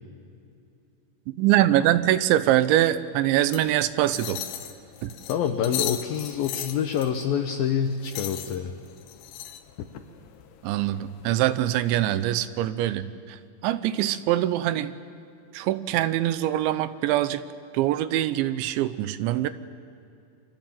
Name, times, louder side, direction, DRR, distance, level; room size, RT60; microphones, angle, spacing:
voice 1, 1.4-4.4 5.0-5.1 10.6-14.9 15.5-17.4 17.7-19.5, right 13 dB, 90° right, 14 dB, 3.2 m, -23 dB
sound 1, 3.4-12.2, left 11 dB, 85° left, 3.6 m, -38 dB
voice 2, 5.3-8.7, left 8 dB, 70° left, 5 dB, 2.5 m, -26 dB
29.0 x 24.5 x 7.6 m, 2.6 s
omnidirectional pair, 5.1 m